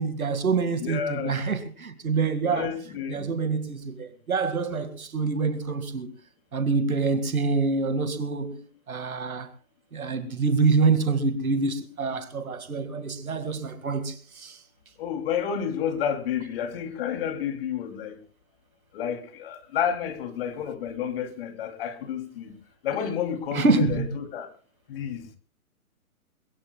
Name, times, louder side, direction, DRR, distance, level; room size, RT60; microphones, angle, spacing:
voice 1, 0.0-2.7 3.1-6.1 6.5-9.5 9.9-14.6 23.5-24.1, right 4 dB, 70° right, 2.1 m, -26 dB
voice 2, 0.8-1.4 2.5-3.3 15.0-18.2 18.9-22.5 22.8-24.5 24.9-25.4, left 8 dB, 40° left, 3.1 m, -30 dB
23.0 x 21.5 x 2.3 m
figure-of-eight pair, 135°, 44 cm